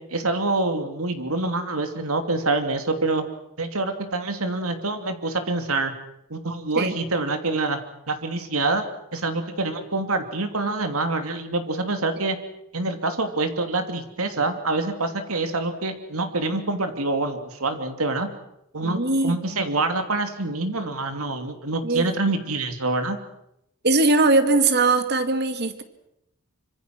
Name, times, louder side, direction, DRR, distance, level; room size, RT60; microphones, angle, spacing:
voice 1, 0.1-3.2 3.6-5.9 6.3-7.8 8.1-8.8 9.1-12.4 12.7-18.3 18.7-23.2, right 2 dB, 75° right, 7 dB, 2.8 m, -26 dB
voice 2, 18.8-19.7 21.8-22.1 23.8-25.8, right 3 dB, 50° right, 9 dB, 2.2 m, -21 dB
26.0 x 25.0 x 6.2 m, 0.82 s
head